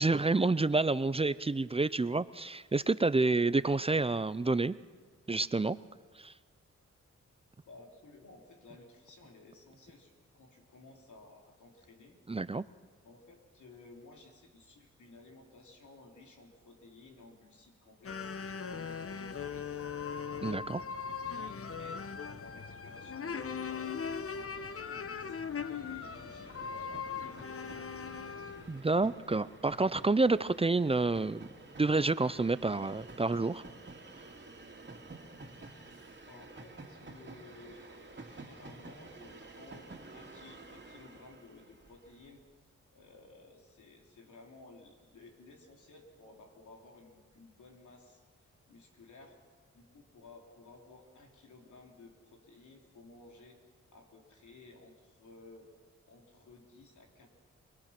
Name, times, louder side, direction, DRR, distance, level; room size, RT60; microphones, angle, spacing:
voice 1, 0.0-4.8 5.3-5.8 6.2-6.3 12.3-12.6 20.4-20.8 28.7-31.5 31.8-33.6, right 3 dB, 20° right, 16 dB, 0.6 m, -29 dB
voice 2, 7.6-12.2 13.0-18.3 18.7-19.9 20.3-23.9 24.3-27.8 36.3-42.4 42.9-49.4 49.7-53.6 53.9-55.7 56.0-57.3, left 3 dB, 90° left, 1 dB, 3.7 m, -56 dB
sound 1, 18.0-28.8, left 6 dB, 50° left, 1.1 m, -39 dB
Train, 23.9-42.3, right 2 dB, 40° right, 2.7 m, -51 dB
30.0 x 21.0 x 6.0 m, 1.5 s
cardioid pair, 70°, 29 cm